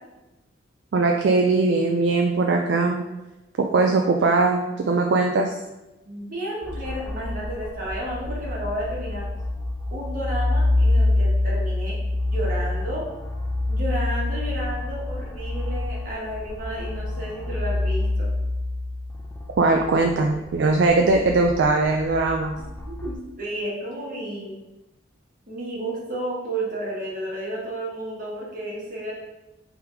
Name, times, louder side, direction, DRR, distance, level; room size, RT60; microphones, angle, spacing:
voice 1, 0.9-3.0 3.6-5.6 19.6-22.6, right 3 dB, 60° right, 2 dB, 0.3 m, -20 dB
voice 2, 6.0-9.3 9.9-13.0 13.7-18.3 22.6-24.6 25.5-29.1, right 1 dB, 45° right, -5 dB, 1.3 m, -32 dB
sound 1, 6.6-23.1, left 2 dB, 10° left, 0.4 m, -27 dB
3.5 x 3.0 x 4.8 m, 1.0 s
head